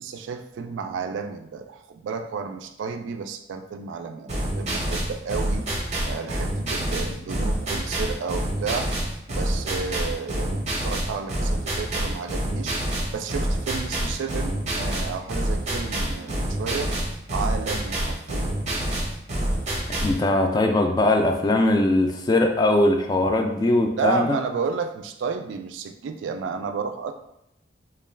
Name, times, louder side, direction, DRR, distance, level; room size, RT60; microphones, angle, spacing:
voice 1, 0.0-5.7 6.1-8.9 9.3-12.8 13.1-16.9 17.3-18.6 24.0-27.1, right 5 dB, 85° right, 6 dB, 0.3 m, -32 dB
sound 1, 4.3-20.2, right 1 dB, 40° right, 0.6 m, -27 dB
voice 2, 20.0-24.4, left 2 dB, 20° left, 3 dB, 0.3 m, -20 dB
2.3 x 2.2 x 3.2 m, 0.80 s
head